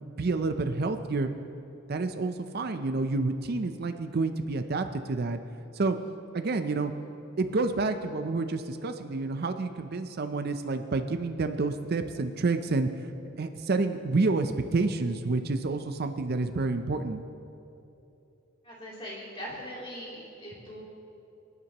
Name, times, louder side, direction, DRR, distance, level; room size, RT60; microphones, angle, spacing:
voice 1, 0.0-1.3 1.9-5.4 5.7-6.0 6.3-6.9 7.4-12.9 13.4-17.2, right 3 dB, 50° right, 8 dB, 0.5 m, -29 dB
voice 2, 18.6-20.8, equal, 25° left, -6 dB, 3.0 m, -41 dB
26.5 x 9.6 x 2.9 m, 2.9 s
head